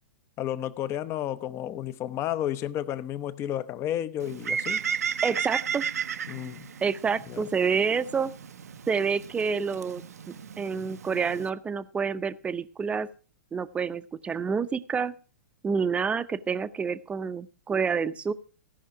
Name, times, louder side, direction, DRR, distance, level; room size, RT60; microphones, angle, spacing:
voice 1, 0.4-4.8 6.3-6.7 7.3-7.5, left 11 dB, 30° left, 0.7 m, -32 dB
Bird, 4.2-11.5, right 7 dB, 80° right, 0.6 m, -34 dB
voice 2, 5.2-5.8 6.8-8.3 8.9-10.0 10.6-13.1 13.5-15.1 15.6-18.3, right 5 dB, 15° right, 0.6 m, -28 dB
16.0 x 5.8 x 5.9 m
hypercardioid pair, 115°, 8 cm